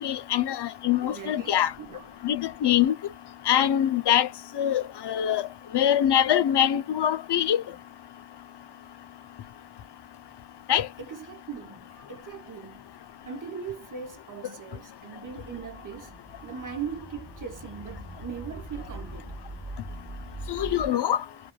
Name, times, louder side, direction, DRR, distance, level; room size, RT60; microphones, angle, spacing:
voice 1, 0.0-1.7 2.2-2.9 3.5-4.3 4.5-5.5 5.7-7.6 10.7-10.9 20.5-21.2, left 10 dB, 60° left, 0.5 m, -23 dB
voice 2, 1.0-2.1 11.0-12.9 13.3-16.1 16.4-19.4, right 6 dB, 40° right, 0.8 m, -39 dB
sound 1, 15.3-20.9, right 1 dB, 15° right, 0.9 m, -42 dB
3.0 x 2.5 x 2.2 m
wide cardioid pair, 155°, 48 cm